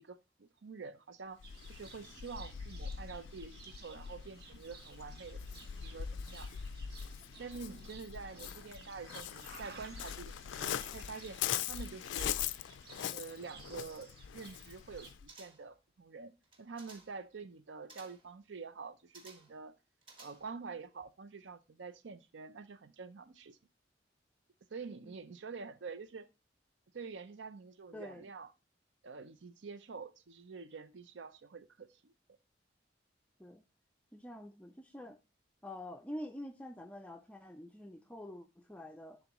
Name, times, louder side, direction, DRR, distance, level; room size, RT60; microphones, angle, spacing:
voice 1, 0.0-1.4 1.7-6.6 7.3-11.4 11.7-12.4 13.1-16.3 16.6-19.8 20.2-23.6 24.7-26.3 26.9-28.5 29.0-32.1, right 4 dB, 80° right, 0.6 m, -47 dB
Waves surf, 1.4-15.3, left 9 dB, 80° left, 0.3 m, -42 dB
Livestock farm animals working animals, 1.4-15.1, right 4 dB, 55° right, 1.2 m, -56 dB
sound 1, 15.3-15.8 16.4-17.2 17.9-18.3 19.1-19.6 20.0-20.7 21.0-21.1, right 3 dB, 30° right, 1.2 m, -57 dB
voice 2, 27.9-28.3 33.4-33.6 34.1-35.2 35.6-39.2, left 1 dB, 5° left, 0.3 m, -47 dB
10.5 x 3.6 x 3.0 m
head